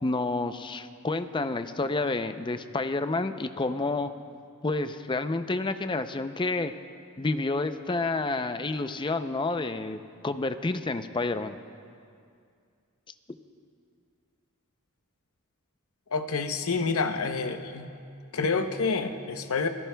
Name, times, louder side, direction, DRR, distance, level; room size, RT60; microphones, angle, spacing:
voice 1, 0.0-4.1 4.6-6.7 7.2-11.6, left 3 dB, 20° left, 10 dB, 0.5 m, -29 dB
voice 2, 16.1-17.9 18.3-19.7, left 4 dB, 70° left, 7 dB, 0.8 m, -28 dB
26.5 x 18.0 x 2.3 m, 2.3 s
head